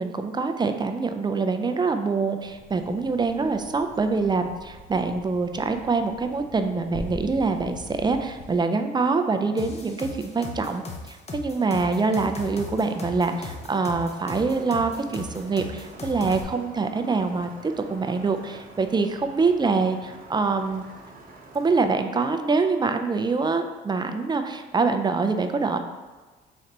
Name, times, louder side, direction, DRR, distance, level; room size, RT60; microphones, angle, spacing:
voice 1, 0.0-20.8 21.5-25.8, right 4 dB, 20° right, 7 dB, 0.4 m, -25 dB
sound 1, 2.4-8.6, left 1 dB, 80° left, 1.1 m, -43 dB
sound 2, 9.6-16.4, left 4 dB, 35° left, 0.7 m, -37 dB
sound 3, 12.5-22.0, right 2 dB, 45° right, 0.9 m, -47 dB
3.8 x 3.3 x 4.2 m, 1.3 s
cardioid pair, 90°, 20 cm